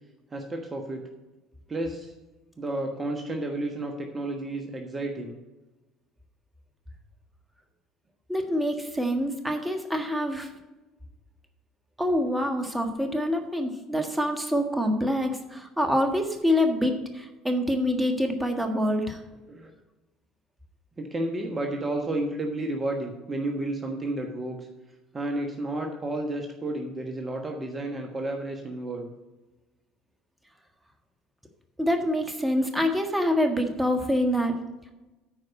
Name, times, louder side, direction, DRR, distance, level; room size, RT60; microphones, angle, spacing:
voice 1, 0.3-1.1 1.7-2.1 2.6-5.4 19.5-19.7 21.0-24.6 25.1-29.1, right 1 dB, 25° right, 3 dB, 1.3 m, -31 dB
voice 2, 8.3-10.5 12.0-19.2 31.8-34.5, equal, 10° right, 4 dB, 1.5 m, -26 dB
9.2 x 4.8 x 7.3 m, 1.1 s
hypercardioid pair, 65°, 0 cm